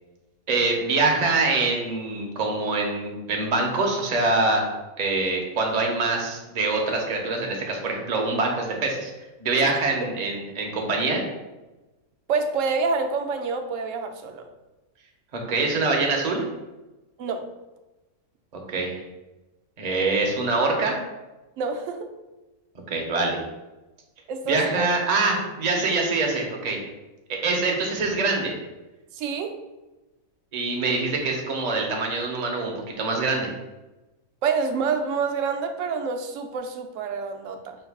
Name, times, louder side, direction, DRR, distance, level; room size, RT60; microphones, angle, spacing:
voice 1, 0.5-4.6 5.0-9.1 9.4-11.2 15.5-16.4 18.5-19.0 19.8-21.0 22.9-23.4 24.5-26.8 27.3-28.5 30.5-33.5, right 3 dB, 40° right, 0 dB, 0.6 m, -24 dB
voice 2, 12.3-14.4 17.2-17.4 21.6-22.1 24.3-24.9 29.1-29.6 34.4-37.8, right 5 dB, 70° right, 5 dB, 0.8 m, -27 dB
5.3 x 2.3 x 3.4 m, 1.1 s
omnidirectional pair, 1.6 m